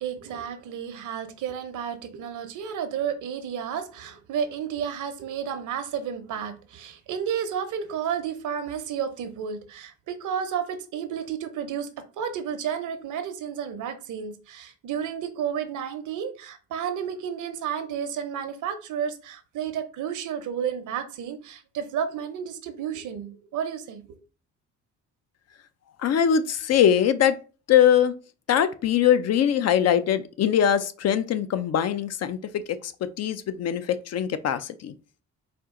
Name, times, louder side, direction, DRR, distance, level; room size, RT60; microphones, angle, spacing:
voice 1, 0.0-11.9 12.2-24.2, right 8 dB, 75° right, 0.8 m, -32 dB
voice 2, 26.0-27.4 27.7-28.1 28.5-34.9, left 9 dB, 60° left, 0.5 m, -22 dB
4.4 x 2.4 x 3.7 m
cardioid pair, 90°, 30 cm